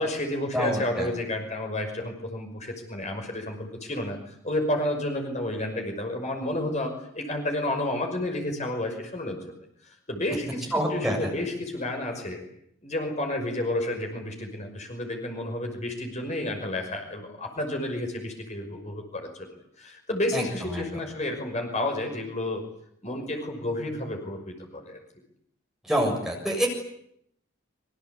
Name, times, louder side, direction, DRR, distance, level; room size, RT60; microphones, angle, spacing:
voice 1, 0.0-9.4 9.9-12.4 12.8-19.5 19.8-22.6 23.0-25.0, left 1 dB, 35° left, 3 dB, 5.8 m, -31 dB
voice 2, 0.5-1.1 10.7-11.3 20.3-20.9 25.8-26.7, equal, ahead, 0 dB, 7.1 m, -27 dB
27.0 x 24.5 x 8.4 m, 0.73 s
head